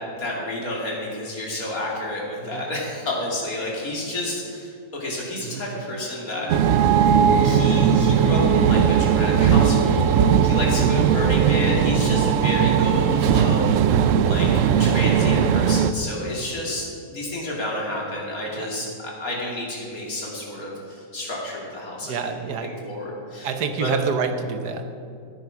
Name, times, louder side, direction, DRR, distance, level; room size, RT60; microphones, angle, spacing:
voice 1, 0.2-6.8 7.4-14.5 14.8-23.5 23.8-23.9, left 1 dB, 60° left, -3 dB, 3.2 m, -30 dB
sound 1, 6.5-15.9, right 7 dB, 65° right, 0.8 m, -18 dB
voice 2, 22.0-22.7 23.4-24.9, right 5 dB, 85° right, 7 dB, 1.6 m, -28 dB
13.5 x 9.5 x 6.0 m, 2.4 s
omnidirectional pair, 1.7 m